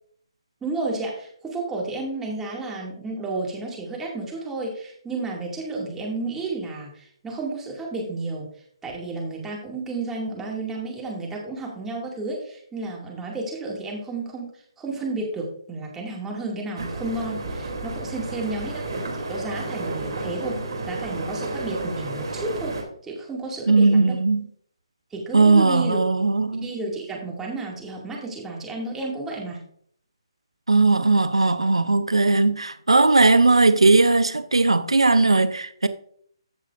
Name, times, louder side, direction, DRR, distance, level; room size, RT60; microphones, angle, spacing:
voice 1, 0.6-8.5 8.8-14.5 14.8-18.8 19.3-20.6 20.9-22.7 23.0-24.2 25.1-26.0 26.6-29.6, right 3 dB, 10° right, 2.3 m, -31 dB
sound 1, 16.8-22.8, right 2 dB, 60° right, 2.9 m, -31 dB
voice 2, 23.7-24.4 25.3-26.7 30.7-35.9, right 3 dB, 90° right, 0.6 m, -18 dB
14.5 x 6.5 x 2.5 m
figure-of-eight pair, 145°, 3 cm